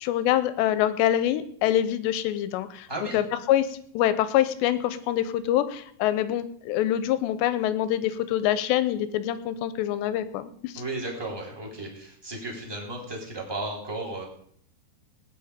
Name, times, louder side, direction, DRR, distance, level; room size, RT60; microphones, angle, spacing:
voice 1, 0.0-2.9 3.1-10.7, left 12 dB, 85° left, 13 dB, 2.9 m, -25 dB
voice 2, 10.7-14.2, right 2 dB, 5° right, -2 dB, 3.0 m, -34 dB
18.5 x 10.0 x 5.1 m, 0.63 s
omnidirectional pair, 5.1 m